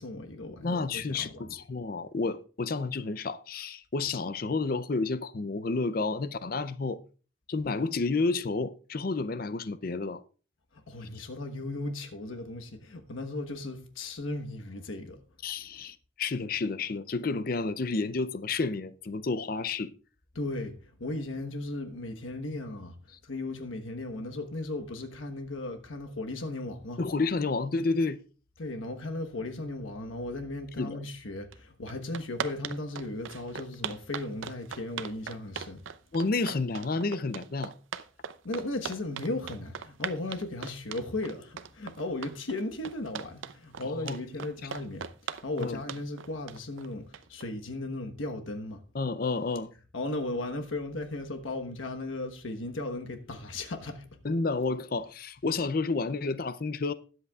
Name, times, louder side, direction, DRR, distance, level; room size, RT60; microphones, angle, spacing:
voice 1, 0.0-1.5 10.7-15.2 20.3-23.0 23.2-27.0 28.6-35.8 38.4-45.1 45.4-48.8 49.9-54.2, left 2 dB, 85° left, 1.2 m, -36 dB
voice 2, 0.6-7.0 7.5-10.2 15.4-19.9 27.0-28.2 30.8-31.0 36.1-37.7 44.0-44.1 45.6-45.8 48.9-49.7 54.2-56.9, left 3 dB, 45° left, 0.5 m, -30 dB
sound 1, 31.5-31.6 31.9-47.4, right 7 dB, 80° right, 0.6 m, -39 dB
20.5 x 8.0 x 2.4 m
head